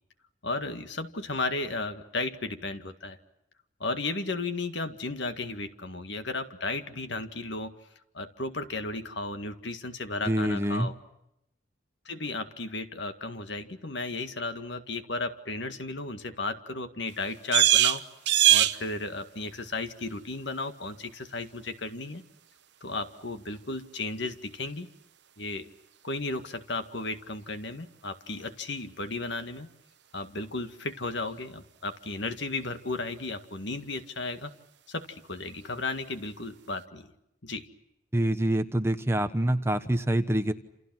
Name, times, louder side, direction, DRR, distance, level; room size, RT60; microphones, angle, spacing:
voice 1, 0.4-3.2 3.8-7.7 8.1-10.9 12.1-18.0 18.5-22.2 22.8-24.9 25.4-25.7 26.0-29.7 30.1-34.5 34.9-37.1 37.4-37.7, left 3 dB, 60° left, 8 dB, 1.9 m, -34 dB
voice 2, 10.2-10.9 38.1-40.5, right 1 dB, 15° right, 8 dB, 1.2 m, -26 dB
sound 1, 17.1-36.9, right 12 dB, 60° right, 1.0 m, -33 dB
29.0 x 28.0 x 6.1 m, 0.83 s
head